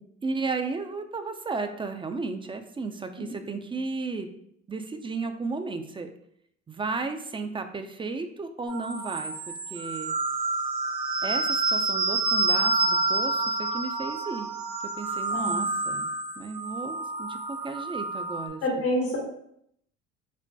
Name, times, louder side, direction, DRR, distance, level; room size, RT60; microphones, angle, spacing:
voice 1, 0.2-4.3 4.7-6.1 6.7-10.1 11.2-14.5 15.0-16.1 16.4-18.6, right 3 dB, 15° right, 7 dB, 0.4 m, -34 dB
sound 1, 8.7-18.5, right 3 dB, 85° right, 0.9 m, -28 dB
voice 2, 15.3-15.7 18.6-19.2, left 1 dB, 85° left, -2 dB, 1.2 m, -27 dB
5.4 x 2.1 x 2.7 m, 0.70 s
hypercardioid pair, 70°, 33 cm